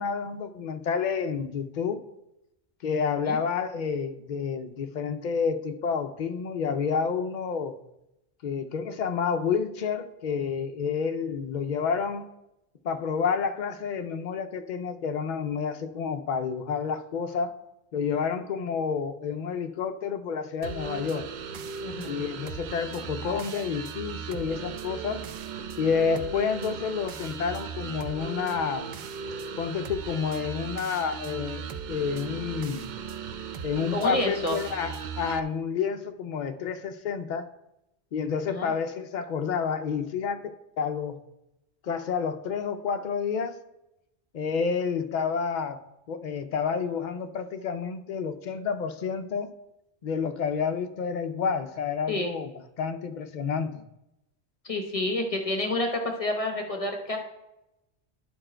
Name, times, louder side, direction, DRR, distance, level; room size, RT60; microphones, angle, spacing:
voice 1, 0.0-2.0 2.8-7.8 8.4-12.2 12.8-17.5 17.9-21.3 22.0-25.2 25.8-28.9 29.6-32.9 33.6-37.5 38.1-40.4 40.8-41.2 41.8-43.6 44.3-45.8 46.1-49.5 50.0-52.5 52.8-53.8, left 6 dB, 55° left, 0.6 m, -29 dB
sound 1, 20.6-35.4, right 6 dB, 60° right, 0.5 m, -37 dB
voice 2, 21.8-22.2 33.9-34.6 38.5-38.7 52.1-52.3 54.6-57.2, left 1 dB, 35° left, 1.0 m, -29 dB
11.0 x 4.5 x 4.4 m
omnidirectional pair, 1.2 m